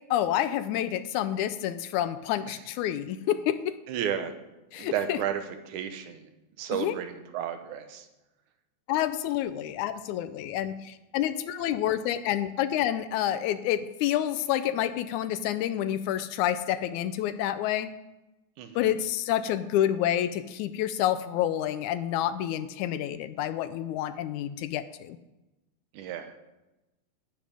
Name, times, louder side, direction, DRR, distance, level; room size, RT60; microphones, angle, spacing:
voice 1, 0.1-3.8 4.7-5.2 6.7-6.9 8.9-17.9 18.8-25.2, left 11 dB, 80° left, 12 dB, 2.0 m, -28 dB
voice 2, 3.9-4.3 4.8-6.3 6.6-8.1 18.6-18.9 25.9-26.3, right 9 dB, 80° right, 8 dB, 2.4 m, -33 dB
10.5 x 9.6 x 5.1 m, 0.99 s
omnidirectional pair, 3.5 m